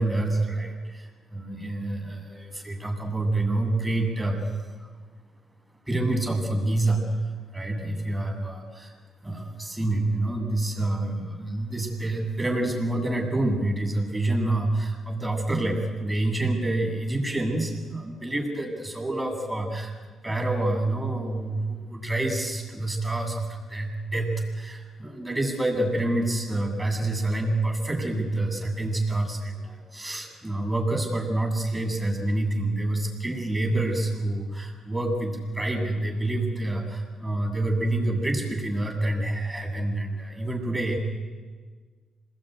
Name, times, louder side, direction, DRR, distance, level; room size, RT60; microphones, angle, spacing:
voice 1, 0.0-4.4 4.8-4.9 5.9-7.2 7.5-8.9 9.2-19.9 20.2-41.0, right 2 dB, 10° right, 2 dB, 8.0 m, -27 dB
26.5 x 21.5 x 9.6 m, 1.5 s
cardioid pair, 90°, 0 cm